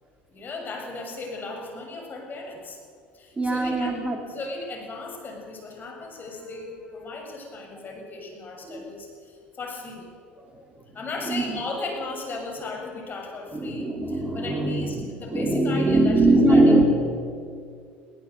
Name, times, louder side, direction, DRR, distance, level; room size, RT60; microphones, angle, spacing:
voice 1, 0.3-2.8 3.1-10.1 10.9-16.7, left 3 dB, 35° left, 2 dB, 7.1 m, -36 dB
voice 2, 3.4-4.2 8.7-8.8 11.3-11.6 13.5-15.0 15.3-16.8, right 2 dB, 20° right, 3 dB, 3.2 m, -21 dB
20.0 x 18.0 x 8.1 m, 2.2 s
hypercardioid pair, 70°, 6 cm